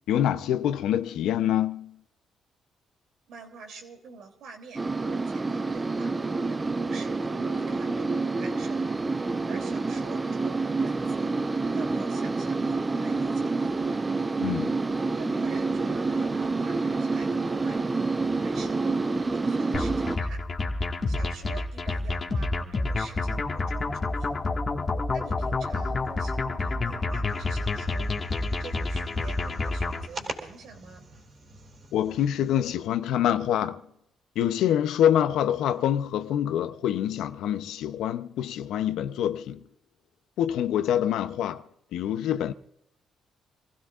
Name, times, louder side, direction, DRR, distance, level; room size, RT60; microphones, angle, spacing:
voice 1, 0.1-2.0 14.4-14.7 31.9-33.8 34.4-39.7 40.4-41.6 41.9-42.5, left 10 dB, 85° left, 0.7 m, -26 dB
voice 2, 3.3-6.1 6.4-8.8 9.4-11.3 11.7-13.9 15.1-17.8 18.4-20.4 21.1-24.3 25.1-28.1 28.6-31.0, right 5 dB, 75° right, 3.0 m, -46 dB
sound 1, 4.8-20.2, right 3 dB, 25° right, 0.7 m, -28 dB
sound 2, 19.7-30.1, left 3 dB, 35° left, 1.7 m, -29 dB
sound 3, 27.3-32.8, right 2 dB, 50° right, 3.8 m, -44 dB
27.5 x 16.0 x 2.5 m
cardioid pair, 90°, 0 cm